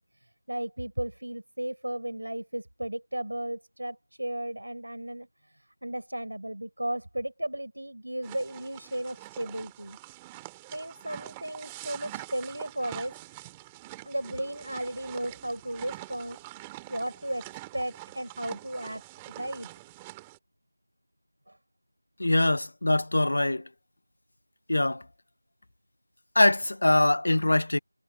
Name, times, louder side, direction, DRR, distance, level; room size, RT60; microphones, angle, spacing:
voice 1, 0.0-10.0 10.7-13.2 14.0-16.4 16.9-19.7 21.5-21.6, right 1 dB, 85° right, 7.3 m, -35 dB
sound 1, 8.2-20.4, right 19 dB, 5° right, 3.1 m, -45 dB
voice 2, 22.2-23.6 24.7-25.0 26.3-27.8, left 1 dB, 45° left, 1.0 m, -23 dB
figure-of-eight pair, 175°, 0 cm